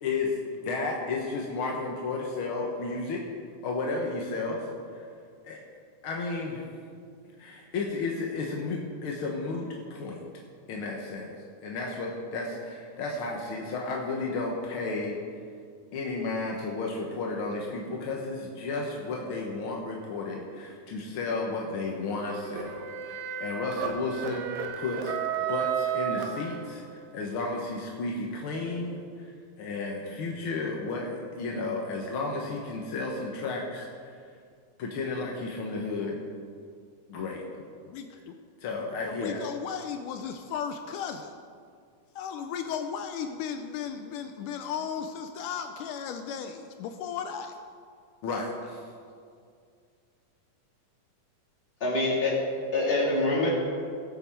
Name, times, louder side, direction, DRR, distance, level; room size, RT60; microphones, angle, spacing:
voice 1, 0.0-3.2 3.6-4.7 4.9-5.0 5.4-5.6 6.0-6.6 7.4-10.2 10.7-11.3 11.6-15.2 15.9-25.1 25.5-26.8 27.1-29.3 29.6-34.2 34.8-36.2 37.1-37.4 38.6-39.4 48.2-48.8, left 3 dB, 65° left, -1 dB, 1.3 m, -33 dB
sound 1, 22.2-27.0, right 8 dB, 85° right, 2.6 m, -33 dB
voice 2, 37.9-38.4 39.0-41.3 42.2-47.5, left 7 dB, 80° left, 7 dB, 2.1 m, -35 dB
voice 3, 51.8-52.4 52.7-53.5, left 2 dB, 20° left, -4 dB, 2.3 m, -25 dB
18.0 x 8.0 x 4.5 m, 2.2 s
omnidirectional pair, 3.9 m